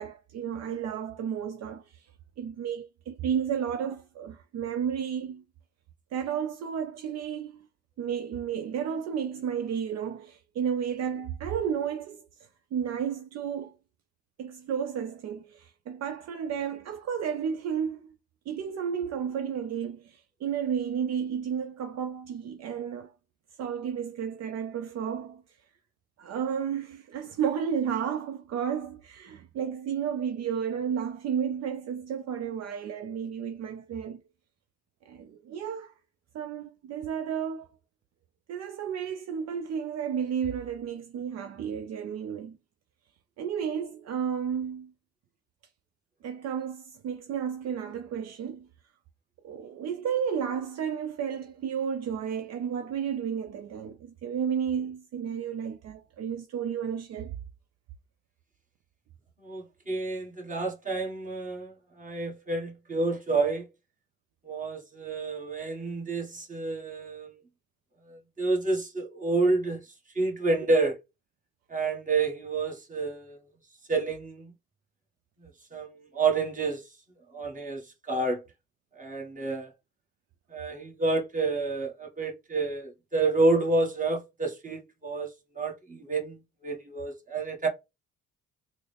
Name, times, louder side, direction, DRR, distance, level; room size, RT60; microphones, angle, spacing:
voice 1, 0.0-2.1 2.4-5.4 6.1-7.7 8.0-13.8 14.4-18.2 18.5-23.1 23.6-25.4 26.2-34.2 35.1-35.9 36.3-37.7 38.5-42.6 43.4-44.9 46.2-48.7 49.4-57.4, right 8 dB, 60° right, 0.5 m, -32 dB
voice 2, 59.4-63.7 64.4-67.4 68.1-70.9 71.7-73.4 73.9-74.5 75.4-76.9 77.3-78.4 78.9-79.7 80.5-87.7, right 3 dB, 25° right, 1.4 m, -29 dB
3.8 x 2.1 x 3.3 m
cardioid pair, 85°, 30 cm